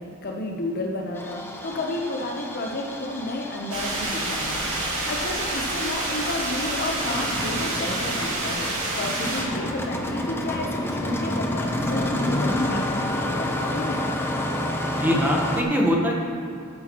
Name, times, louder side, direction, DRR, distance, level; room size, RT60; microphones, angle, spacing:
voice 1, 0.0-4.6 5.1-14.1, left 2 dB, 45° left, 1 dB, 0.8 m, -31 dB
Engine starting, 1.1-15.6, left 1 dB, 10° left, 0.7 m, -30 dB
sound 1, 3.7-9.4, right 2 dB, 80° right, 2.3 m, -28 dB
voice 2, 14.9-16.2, equal, 10° right, -1 dB, 1.1 m, -22 dB
12.5 x 8.4 x 3.0 m, 2.7 s
head